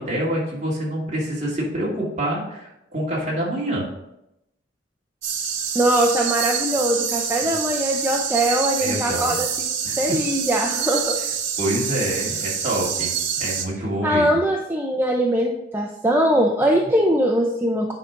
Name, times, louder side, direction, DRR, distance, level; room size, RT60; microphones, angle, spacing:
voice 1, 0.0-3.8 7.4-7.5 8.8-9.4 9.8-10.2 11.6-13.1 13.4-14.4, right 1 dB, 40° right, -5 dB, 2.4 m, -26 dB
sound 1, 5.2-13.7, right 7 dB, 80° right, 1.0 m, -26 dB
voice 2, 5.7-9.5 10.0-11.2 14.0-17.9, right 1 dB, 10° right, 0 dB, 0.5 m, -21 dB
9.5 x 5.0 x 3.8 m, 0.85 s
head